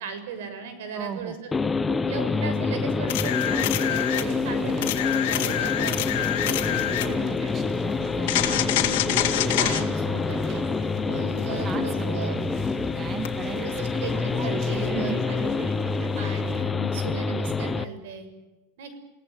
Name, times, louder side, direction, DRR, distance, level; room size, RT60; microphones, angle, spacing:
voice 1, 0.0-1.5 1.9-7.7 8.4-10.6 11.0-12.3 13.5-15.6 16.2-18.3 18.8-19.0, right 5 dB, 75° right, 9 dB, 6.7 m, -37 dB
voice 2, 0.9-1.4 7.3-8.7 11.6-12.5 12.9-14.0 14.9-15.2, right 6 dB, 25° right, 8 dB, 1.9 m, -36 dB
sound 1, 1.5-17.8, left 4 dB, 10° left, 0.9 m, -27 dB
sound 2, 3.1-4.3 4.8-7.1 8.3-9.8 13.2-13.3, left 14 dB, 70° left, 3.2 m, -26 dB
sound 3, 3.8-16.6, right 4 dB, 45° right, 4.5 m, -41 dB
29.5 x 18.0 x 9.4 m, 1.1 s
supercardioid pair, 155°, 0 cm